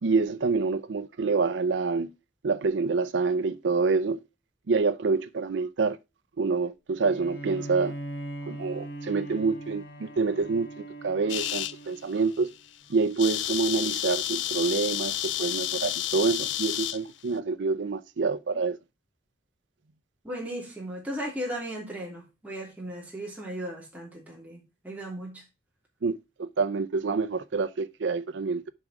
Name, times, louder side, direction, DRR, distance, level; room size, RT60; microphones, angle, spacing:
voice 1, 0.0-2.1 2.4-4.2 4.7-6.0 6.4-7.9 8.5-12.5 12.9-18.8 26.0-28.7, right 4 dB, 85° right, 0.5 m, -27 dB
Bowed string instrument, 7.0-12.5, right 1 dB, 60° left, 1.4 m, -40 dB
sound 1, 11.3-11.7 12.3-12.5 12.7-12.8 13.0-17.0, left 13 dB, 90° left, 0.4 m, -30 dB
voice 2, 20.2-25.4, equal, 10° right, 2.9 m, -36 dB
7.5 x 5.0 x 4.8 m
head